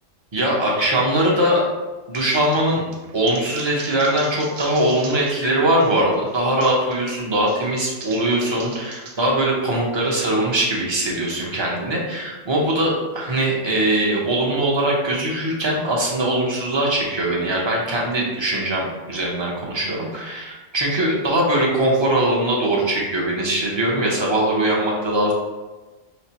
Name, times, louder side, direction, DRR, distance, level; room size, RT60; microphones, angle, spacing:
voice 1, 0.3-1.6 2.1-2.8 3.1-25.3, right 1 dB, 35° right, -3 dB, 0.4 m, -21 dB
sound 1, 2.1-5.5 5.8-9.2, right 4 dB, 80° right, 1.0 m, -40 dB
5.1 x 2.1 x 2.8 m, 1.2 s
omnidirectional pair, 1.3 m